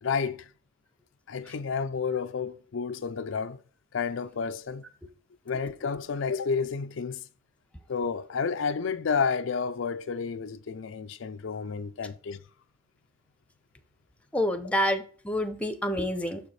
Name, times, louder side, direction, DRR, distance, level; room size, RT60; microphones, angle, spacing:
voice 1, 0.0-0.5 1.3-3.6 3.9-4.8 5.5-7.2 7.9-12.4, left 5 dB, 70° left, 0.4 m, -30 dB
voice 2, 14.3-16.4, equal, 5° left, 0.7 m, -28 dB
6.9 x 4.9 x 4.1 m
head